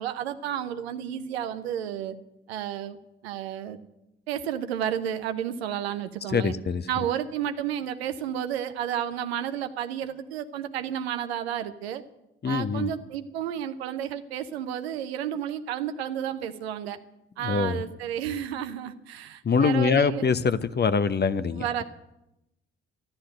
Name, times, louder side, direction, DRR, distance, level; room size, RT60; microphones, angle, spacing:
voice 1, 0.0-2.2 2.5-3.0 3.2-3.8 4.3-6.5 6.9-12.0 12.4-17.0 17.4-20.3 21.6-21.8, right 10 dB, 80° right, 0.9 m, -31 dB
voice 2, 6.3-6.8 12.4-12.9 17.4-17.8 19.4-21.8, left 5 dB, 35° left, 1.0 m, -24 dB
13.0 x 12.0 x 7.8 m
figure-of-eight pair, 45°, 31 cm